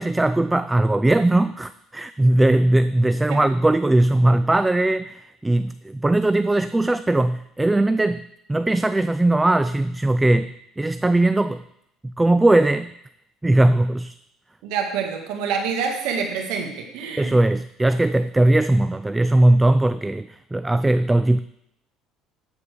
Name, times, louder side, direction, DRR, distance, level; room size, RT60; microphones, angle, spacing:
voice 1, 0.0-8.2 8.5-11.6 12.0-12.9 13.4-14.2 17.2-21.4, right 1 dB, 10° right, 13 dB, 0.3 m, -19 dB
voice 2, 14.6-17.4, right 6 dB, 80° right, 3 dB, 2.0 m, -27 dB
12.5 x 4.5 x 6.7 m, 0.79 s
cardioid pair, 110°, 0 cm